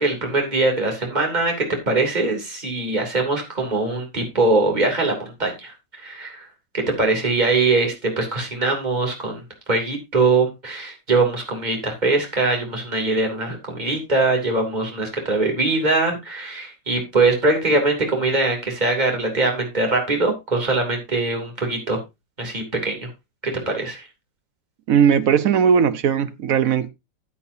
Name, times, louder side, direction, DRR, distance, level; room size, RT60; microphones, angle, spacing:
voice 1, 0.0-1.5 1.9-6.5 6.7-9.3 9.7-22.0 22.4-23.1 23.7-24.0, right 3 dB, 25° right, 3.0 m, -22 dB
voice 2, 24.9-26.9, right 7 dB, 65° right, 0.9 m, -18 dB
13.5 x 8.5 x 2.7 m
omnidirectional pair, 2.0 m